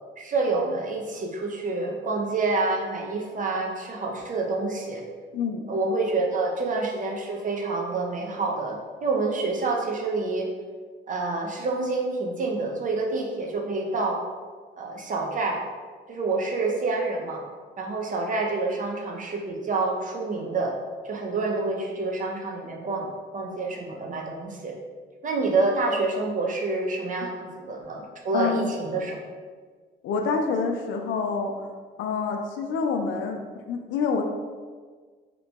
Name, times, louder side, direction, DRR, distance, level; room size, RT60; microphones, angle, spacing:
voice 1, 0.2-5.0 5.7-10.5 11.1-14.2 14.8-15.6 16.1-17.4 17.8-20.7 21.0-23.1 23.3-24.7 25.2-29.2, right 3 dB, 40° right, 0 dB, 0.7 m, -27 dB
voice 2, 5.3-5.7 28.3-28.7 30.0-31.7 32.0-33.4 33.7-34.2, left 5 dB, 75° left, 4 dB, 0.5 m, -27 dB
3.0 x 2.2 x 4.0 m, 1.5 s
cardioid pair, 90°, 20 cm